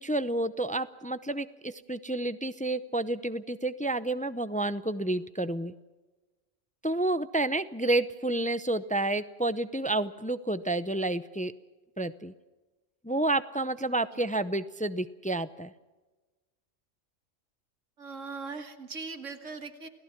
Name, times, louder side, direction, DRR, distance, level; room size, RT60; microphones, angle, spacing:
voice 1, 0.0-5.7 6.8-11.5 12.0-12.3 13.0-15.7, right 2 dB, 10° left, 13 dB, 0.4 m, -30 dB
voice 2, 13.9-14.2 18.0-19.9, right 4 dB, 75° right, 7 dB, 2.1 m, -40 dB
29.0 x 17.5 x 5.9 m, 1.2 s
omnidirectional pair, 1.3 m